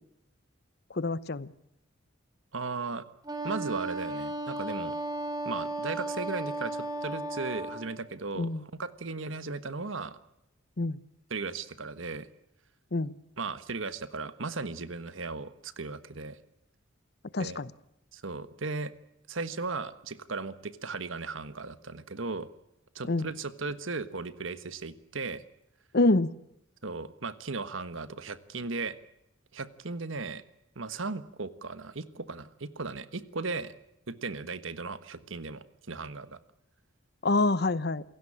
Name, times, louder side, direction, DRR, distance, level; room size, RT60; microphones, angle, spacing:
voice 1, 0.9-1.5 8.4-8.6 10.8-11.0 12.9-13.1 17.3-17.7 23.1-23.3 25.9-26.3 37.2-38.0, left 2 dB, 55° left, 18 dB, 0.9 m, -26 dB
voice 2, 2.5-3.0 3.4-5.0 5.4-10.2 11.3-12.3 13.4-16.4 17.4-17.6 18.1-18.9 19.3-22.5 22.9-25.4 26.8-29.0 29.5-30.4 30.7-33.7 34.1-36.4, right 3 dB, 70° right, 14 dB, 1.4 m, -36 dB
Wind instrument woodwind instrument, 3.2-7.9, right 2 dB, 20° right, 3.0 m, -35 dB
28.0 x 17.0 x 8.7 m, 0.86 s
head